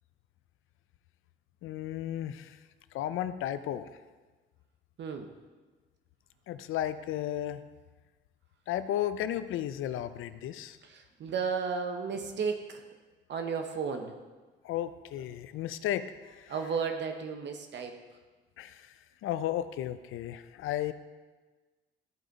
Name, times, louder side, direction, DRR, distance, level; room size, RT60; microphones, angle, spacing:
voice 1, 1.6-2.6 2.9-3.9 6.5-7.6 8.7-10.8 14.6-16.5 18.6-19.0 19.2-20.9, left 11 dB, 80° left, 12 dB, 0.5 m, -34 dB
voice 2, 5.0-5.3 10.8-12.8 13.3-14.1 16.5-18.0, right 5 dB, 60° right, 5 dB, 0.9 m, -33 dB
13.5 x 5.0 x 4.0 m, 1.3 s
cardioid pair, 100°, 20 cm